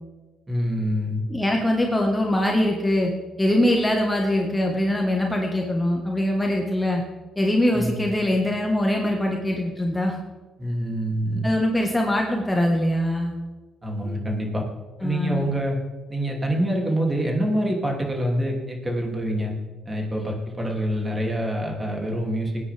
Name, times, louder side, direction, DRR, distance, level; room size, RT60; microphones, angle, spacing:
voice 1, 0.5-1.2 7.7-8.0 10.6-11.4 13.8-14.6 15.0-15.8 16.1-19.5 19.8-22.6, equal, 20° right, 0 dB, 2.9 m, -26 dB
voice 2, 1.3-3.1 3.4-7.0 7.4-10.1 11.4-13.3 15.0-15.5, left 1 dB, 10° left, 1 dB, 1.6 m, -22 dB
20.0 x 9.7 x 3.6 m, 1.2 s
cardioid pair, 90°, 0 cm